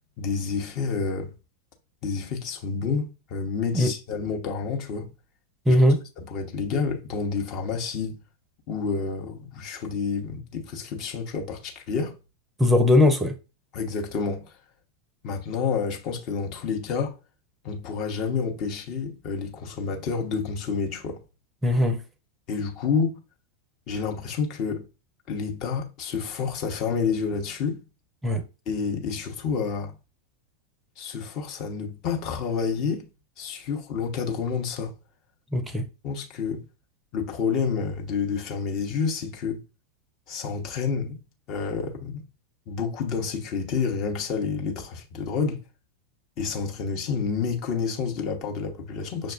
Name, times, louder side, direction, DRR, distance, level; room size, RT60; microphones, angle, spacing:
voice 1, 0.2-1.3 2.0-5.1 5.7-5.8 6.2-8.2 8.7-12.1 13.7-14.4 15.2-17.1 17.6-21.2 22.5-23.2 23.9-24.9 25.3-27.8 28.7-29.9 31.0-33.1 33.4-34.9 36.0-36.6 37.1-39.6 40.3-41.2 41.5-42.2 42.7-45.6 46.4-49.3, left 5 dB, 40° left, 0.8 m, -29 dB
voice 2, 5.7-6.0 12.6-13.4 21.6-22.0 28.2-28.4 35.5-35.9, left 1 dB, 10° right, 0.6 m, -19 dB
6.2 x 2.3 x 2.4 m
figure-of-eight pair, 90°, 0 cm